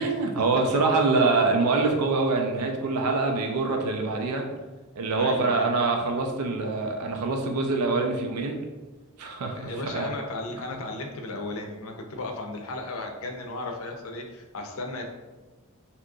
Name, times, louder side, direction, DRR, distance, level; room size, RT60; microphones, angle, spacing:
voice 1, 0.0-4.5 5.0-8.6 9.2-10.1, right 3 dB, 90° right, 3 dB, 0.4 m, -25 dB
voice 2, 5.2-5.7 9.5-15.0, left 2 dB, 65° left, 3 dB, 0.5 m, -35 dB
2.8 x 2.4 x 3.6 m, 1.2 s
head